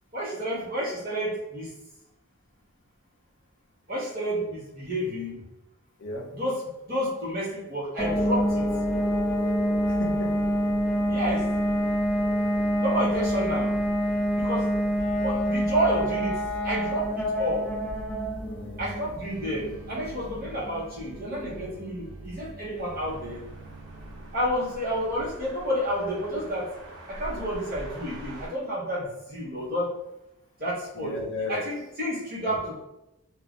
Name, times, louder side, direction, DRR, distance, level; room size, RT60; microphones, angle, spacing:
voice 1, 0.1-1.7 3.9-5.5 6.3-8.7 11.1-11.5 12.8-13.7 14.3-14.7 15.2-17.7 18.8-23.4 24.3-26.7 27.1-29.9 30.6-31.2 31.5-32.7, equal, 45° right, -6 dB, 1.0 m, -30 dB
sound 1, 8.0-22.6, equal, 5° left, 0.3 m, -27 dB
voice 2, 9.9-10.4 12.4-12.5 18.3-19.2 30.9-31.6 32.5-32.7, left 2 dB, 60° left, 0 dB, 0.6 m, -36 dB
sound 2, 19.1-25.4, right 3 dB, 60° right, 0.4 m, -47 dB
sound 3, 22.7-28.5, right 1 dB, 90° right, 0.9 m, -44 dB
2.5 x 2.3 x 3.4 m, 0.91 s
head